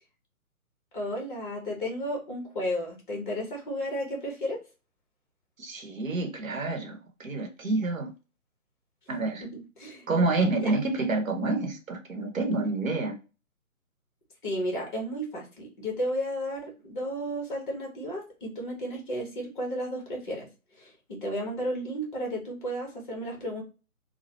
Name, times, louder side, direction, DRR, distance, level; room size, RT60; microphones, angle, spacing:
voice 1, 0.9-4.6 9.5-10.1 10.6-10.7 14.4-20.5 20.8-23.6, equal, 35° left, 0 dB, 1.2 m, -33 dB
voice 2, 5.6-8.1 9.1-9.4 10.1-13.2, right 3 dB, 65° right, 4 dB, 1.1 m, -28 dB
3.2 x 2.3 x 2.8 m, 0.32 s
figure-of-eight pair, 140°, 44 cm